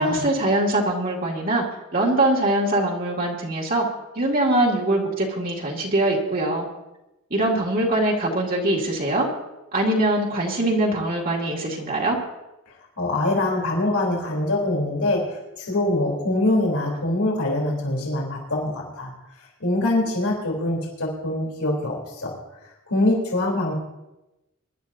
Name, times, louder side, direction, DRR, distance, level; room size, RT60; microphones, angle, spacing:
voice 1, 0.0-1.7 1.9-3.8 4.2-6.7 7.3-9.3 9.7-12.2, right 1 dB, 40° right, -3 dB, 2.3 m, -22 dB
voice 2, 13.0-15.2 15.6-19.1 19.6-22.3 22.9-23.7, left 1 dB, 80° left, -1 dB, 3.4 m, -24 dB
23.5 x 12.0 x 2.7 m, 0.97 s
head